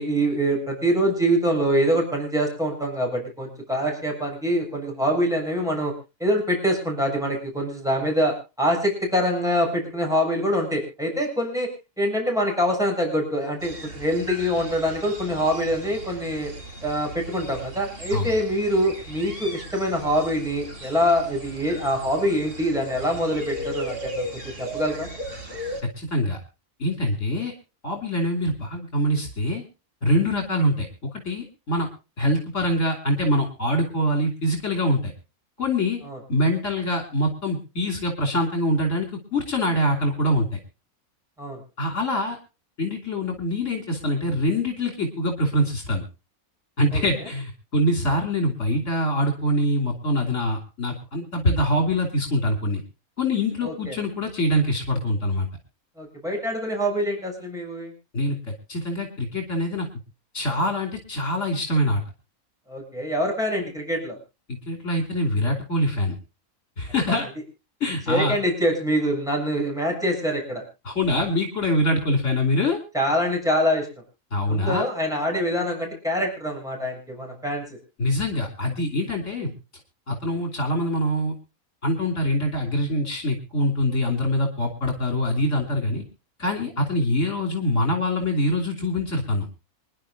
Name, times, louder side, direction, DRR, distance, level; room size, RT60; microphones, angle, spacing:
voice 1, 0.0-5.9 6.2-11.7 12.0-16.5 16.8-24.3 24.6-25.1 36.0-36.2 41.4-41.6 46.9-47.0 53.6-54.0 56.0-57.9 62.7-64.2 67.1-67.2 68.1-70.6 72.9-73.9 74.5-77.8, equal, ahead, 0 dB, 6.9 m, -24 dB
sound 1, 13.6-25.8, right 1 dB, 40° right, 3.5 m, -37 dB
voice 2, 26.0-26.4 26.8-27.5 27.8-29.6 30.0-30.9 31.2-31.9 32.2-35.1 35.6-36.0 36.3-40.6 41.8-42.4 42.8-46.0 46.8-52.8 53.2-55.5 58.1-59.9 60.3-62.0 64.5-66.1 66.8-67.3 67.8-68.4 70.8-72.8 74.3-74.8 78.0-79.5 80.1-81.3 81.8-86.0 86.4-89.5, left 1 dB, 55° left, 2 dB, 3.4 m, -24 dB
26.5 x 11.0 x 2.6 m, 0.31 s
omnidirectional pair, 1.5 m